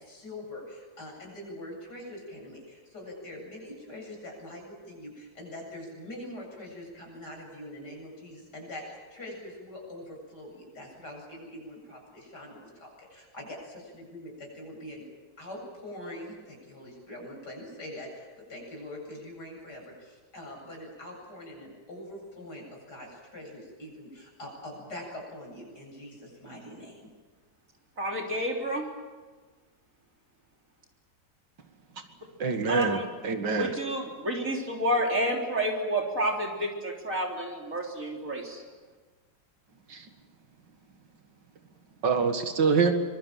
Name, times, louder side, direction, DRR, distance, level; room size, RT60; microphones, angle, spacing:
voice 1, 0.0-15.0 15.4-27.1, left 1 dB, 65° left, 0 dB, 8.7 m, -43 dB
voice 2, 28.0-28.9 32.7-33.1 33.5-38.6, equal, 45° right, 0 dB, 3.9 m, -30 dB
voice 3, 32.4-33.7 39.9-40.1 42.0-43.0, right 5 dB, 75° right, 6 dB, 2.5 m, -25 dB
25.0 x 24.0 x 7.5 m, 1.4 s
omnidirectional pair, 1.9 m